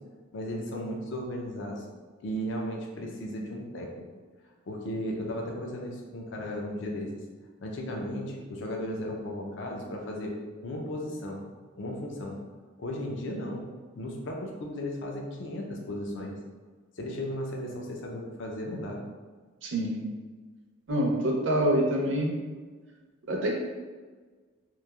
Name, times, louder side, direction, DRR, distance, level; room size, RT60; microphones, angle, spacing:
voice 1, 0.3-1.8 2.2-4.0 4.7-7.2 7.6-10.3 10.6-11.4 11.8-12.4 12.8-13.6 13.9-16.4 17.0-19.0, left 1 dB, 60° left, 0 dB, 0.4 m, -35 dB
voice 2, 19.6-20.0 20.9-22.3 23.3-23.5, right 1 dB, 60° right, 0 dB, 0.5 m, -26 dB
3.1 x 2.4 x 2.3 m, 1.4 s
head